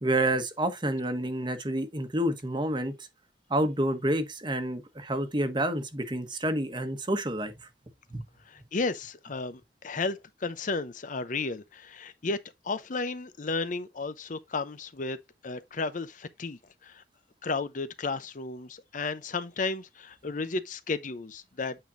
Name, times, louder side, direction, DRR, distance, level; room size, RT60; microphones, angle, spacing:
voice 1, 0.0-3.1 3.5-7.5 8.1-8.2, right 1 dB, 25° right, 1.2 m, -29 dB
voice 2, 8.5-12.4 12.6-15.2 15.4-17.0 17.4-21.8, left 3 dB, 45° left, 0.6 m, -33 dB
8.9 x 5.1 x 2.6 m
head